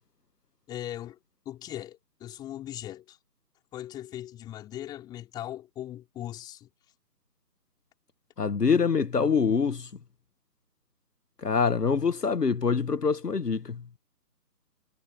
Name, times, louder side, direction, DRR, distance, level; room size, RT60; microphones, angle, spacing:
voice 1, 0.7-1.2 1.4-3.2 3.7-6.7, left 12 dB, 10° left, 4.6 m, -39 dB
voice 2, 8.4-9.9 11.4-13.8, left 5 dB, 70° left, 1.4 m, -25 dB
figure-of-eight pair, 155°, 49 cm